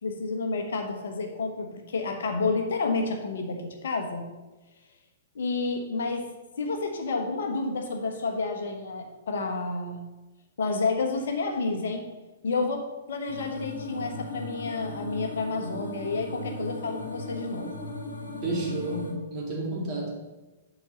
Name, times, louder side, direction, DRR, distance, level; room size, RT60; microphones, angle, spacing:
voice 1, 0.0-4.3 5.3-6.3 6.6-10.0 10.6-12.0 12.4-17.7, left 3 dB, 60° left, 3 dB, 1.2 m, -30 dB
sound 1, 13.3-19.1, left 2 dB, 75° left, 1.5 m, -37 dB
voice 2, 18.4-20.1, right 2 dB, 30° right, -3 dB, 2.7 m, -31 dB
7.8 x 4.2 x 6.9 m, 1.1 s
figure-of-eight pair, 110°, 0 cm